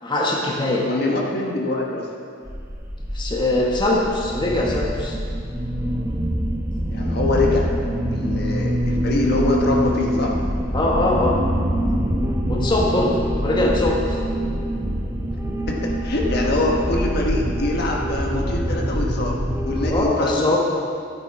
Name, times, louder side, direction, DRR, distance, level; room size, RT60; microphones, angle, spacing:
voice 1, 0.0-0.9 3.1-5.2 10.7-11.4 12.5-13.2 13.4-14.2 19.9-20.6, left 2 dB, 25° left, -2 dB, 1.2 m, -21 dB
voice 2, 0.8-2.2 6.9-7.7 8.1-10.4 15.7-20.6, left 2 dB, 55° left, -1 dB, 1.4 m, -24 dB
sound 1, 2.5-20.0, equal, 15° right, 1.2 m, -24 dB
12.0 x 9.2 x 4.7 m, 2.2 s
head